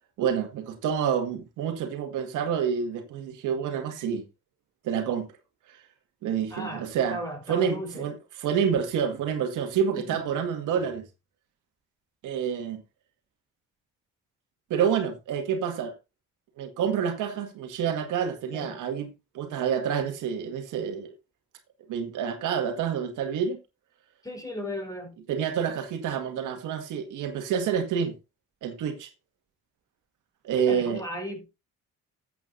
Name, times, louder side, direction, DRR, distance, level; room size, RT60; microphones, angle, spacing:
voice 1, 0.2-4.2 4.8-5.3 6.2-7.2 7.5-8.1 8.4-11.1 12.2-12.8 14.7-15.9 16.6-21.1 21.9-23.6 25.3-28.2 28.6-29.1 30.4-31.0, right 7 dB, 85° right, 2.0 m, -28 dB
voice 2, 6.5-6.8 7.1-8.1 9.9-10.2 18.5-18.8 24.2-25.1 30.6-31.5, equal, 10° left, 5.3 m, -35 dB
14.0 x 8.2 x 2.6 m
cardioid pair, 90°, 30 cm